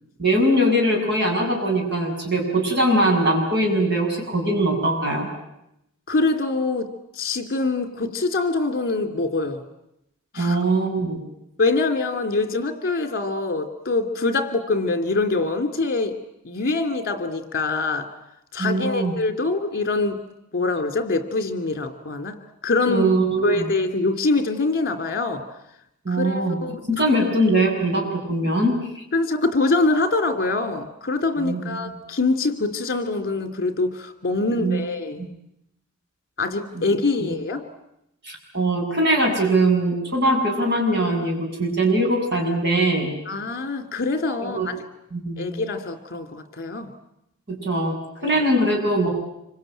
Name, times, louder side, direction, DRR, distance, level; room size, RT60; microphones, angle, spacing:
voice 1, 0.2-5.3 10.4-11.2 18.6-19.1 22.8-23.7 26.0-26.6 26.9-29.0 31.4-31.6 34.5-34.8 35.2-35.3 36.7-36.8 37.2-37.3 38.2-43.1 44.4-44.7 45.1-45.5 47.5-47.9 48.2-49.1, right 1 dB, 50° right, 1 dB, 7.6 m, -21 dB
voice 2, 6.1-9.6 10.3-10.6 11.6-16.2 16.4-18.1 18.5-20.3 20.5-22.4 22.6-23.1 23.4-25.4 26.1-26.8 29.1-35.2 36.4-37.6 43.3-44.8 45.4-46.9 48.2-48.4, left 3 dB, 45° left, 7 dB, 2.8 m, -24 dB
26.5 x 24.5 x 9.1 m, 0.82 s
head